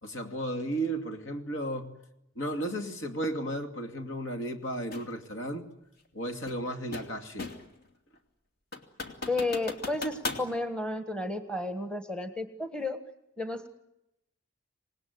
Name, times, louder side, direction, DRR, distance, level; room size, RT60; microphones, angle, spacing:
voice 1, 0.0-2.0 2.4-5.7 6.1-7.5, right 1 dB, 70° left, 5 dB, 2.5 m, -34 dB
sound 1, 4.9-5.1 6.5-7.8 8.2-8.3 8.7-10.5, left 3 dB, 50° left, 2.6 m, -38 dB
voice 2, 9.3-13.0 13.4-13.7, left 2 dB, 5° left, 7 dB, 1.5 m, -32 dB
26.5 x 19.5 x 9.5 m, 0.87 s
head